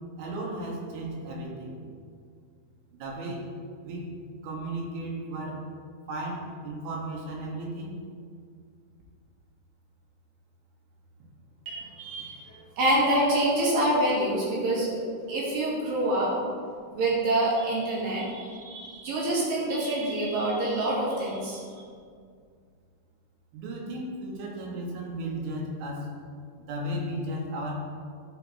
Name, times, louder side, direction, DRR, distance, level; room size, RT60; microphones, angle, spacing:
voice 1, 0.2-1.8 2.9-3.5 3.8-4.1 4.4-5.7 6.1-8.0 23.5-26.1 26.7-27.8, right 1 dB, 70° right, -1 dB, 3.7 m, -35 dB
voice 2, 11.7-12.4 12.8-14.9 15.3-16.3 16.9-21.6, right 1 dB, 55° right, -5 dB, 3.2 m, -26 dB
14.5 x 5.7 x 4.1 m, 2.1 s
omnidirectional pair, 5.9 m